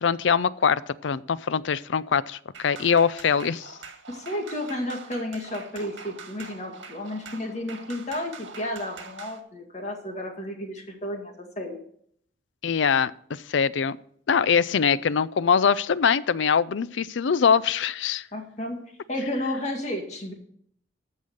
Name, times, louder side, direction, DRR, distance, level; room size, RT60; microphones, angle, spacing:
voice 1, 0.0-3.7 12.6-14.0 14.3-18.2, left 6 dB, 80° left, 18 dB, 0.5 m, -23 dB
sound 1, 2.5-9.4, right 5 dB, 80° right, 1.7 m, -44 dB
voice 2, 4.1-11.8 18.3-18.8 19.1-20.3, left 1 dB, 35° left, 3 dB, 2.0 m, -32 dB
14.0 x 5.5 x 6.5 m, 0.65 s
head